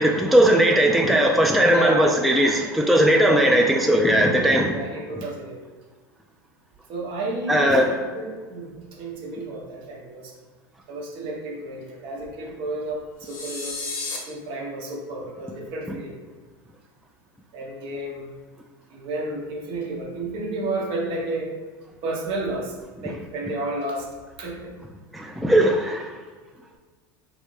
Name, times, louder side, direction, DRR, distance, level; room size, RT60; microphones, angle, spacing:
voice 1, 0.0-4.8 7.5-7.9 25.1-26.1, right 1 dB, ahead, 1 dB, 0.3 m, -18 dB
voice 2, 1.7-2.2 4.6-5.6 6.9-10.3 10.9-13.9 14.3-16.2 17.5-18.3 18.9-21.5 22.0-22.8 23.0-24.1 24.4-24.8, right 2 dB, 55° right, 0 dB, 0.8 m, -31 dB
sound 1, 13.2-14.2, left 3 dB, 90° left, 0.8 m, -32 dB
3.2 x 2.7 x 3.1 m, 1.4 s
hypercardioid pair, 95°, 11 cm